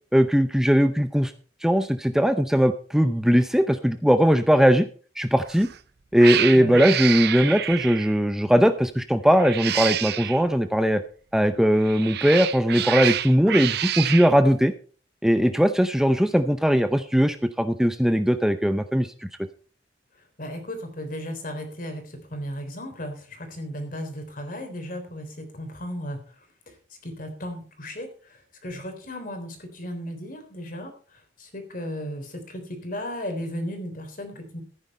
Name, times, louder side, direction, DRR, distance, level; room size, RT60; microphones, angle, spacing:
voice 1, 0.1-1.3 1.6-4.9 5.2-5.7 6.1-11.0 11.3-14.7 15.2-19.3, equal, 5° right, 9 dB, 0.6 m, -20 dB
Cat, 5.5-5.8 6.2-8.2 9.3-10.4 11.7-14.3, right 11 dB, 65° right, 0.6 m, -28 dB
voice 2, 20.4-26.2 26.7-26.8 27.0-30.9 31.4-34.6, equal, 50° left, 6 dB, 3.7 m, -35 dB
14.5 x 9.7 x 4.3 m, 0.40 s
head